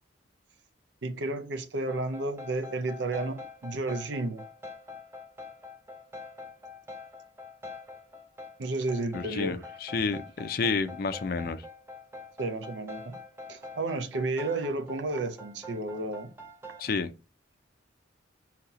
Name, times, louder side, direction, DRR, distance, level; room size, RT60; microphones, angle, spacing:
voice 1, 1.0-4.4 8.6-9.6 12.4-13.1 13.5-16.3, right 2 dB, 65° right, 0.6 m, -32 dB
sound 1, 1.9-17.0, left 2 dB, 10° right, 0.6 m, -45 dB
voice 2, 9.1-11.6 16.8-17.1, left 4 dB, 50° left, 0.4 m, -30 dB
4.1 x 2.8 x 3.9 m
head